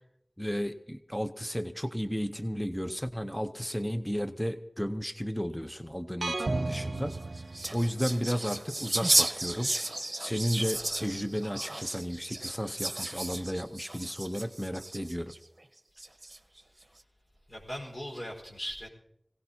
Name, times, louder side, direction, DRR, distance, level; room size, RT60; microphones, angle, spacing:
voice 1, 0.4-7.2 7.7-9.7 10.2-15.3, equal, 5° left, 8 dB, 0.7 m, -33 dB
sound 1, 6.2-8.2, right 2 dB, 85° right, 0.5 m, -33 dB
sound 2, 7.0-15.4 16.0-16.6, right 1 dB, 40° right, 0.9 m, -33 dB
voice 2, 17.5-18.9, equal, 60° left, -3 dB, 4.8 m, -39 dB
25.0 x 17.0 x 2.8 m, 0.76 s
wide cardioid pair, 55°, 0 cm